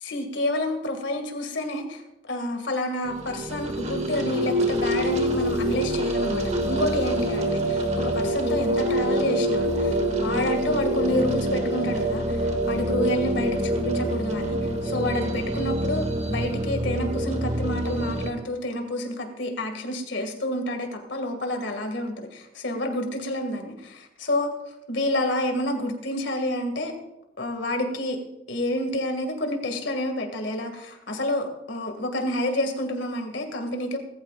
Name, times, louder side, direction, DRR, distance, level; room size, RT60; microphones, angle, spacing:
voice 1, 0.0-24.5 24.9-26.9 27.4-28.2 28.5-34.0, left 1 dB, 75° left, 4 dB, 2.3 m, -29 dB
sound 1, 3.0-18.3, right 1 dB, 40° right, 1.5 m, -26 dB
20.0 x 14.5 x 2.5 m, 0.91 s
head